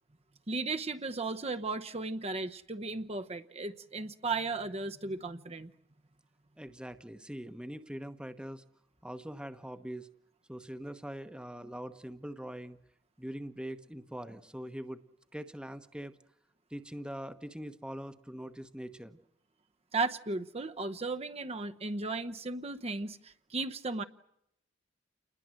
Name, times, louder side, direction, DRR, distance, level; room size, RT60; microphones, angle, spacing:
voice 1, 0.5-5.7 19.9-24.0, right 3 dB, 35° right, 8 dB, 1.0 m, -35 dB
voice 2, 6.6-8.6 9.0-10.1 10.5-12.8 13.2-15.0 15.3-16.1 16.7-19.2, equal, 5° right, 9 dB, 1.1 m, -42 dB
29.0 x 21.0 x 7.7 m, 0.76 s
head